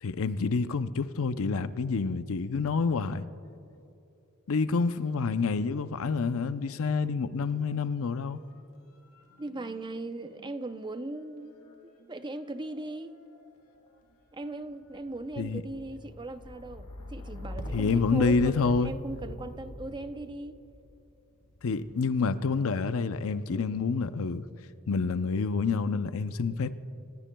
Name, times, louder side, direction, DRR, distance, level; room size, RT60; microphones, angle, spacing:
voice 1, 0.0-3.2 4.5-8.4 15.4-15.6 17.7-18.9 21.6-24.4 24.9-26.8, left 4 dB, 65° left, 0.6 m, -28 dB
sound 1, 5.5-6.8 7.1-22.1 22.9-23.5, left 1 dB, 85° left, 1.6 m, -46 dB
voice 2, 9.4-11.5 12.1-13.1 14.3-20.5, right 2 dB, 20° right, 0.6 m, -38 dB
29.0 x 17.5 x 2.3 m
head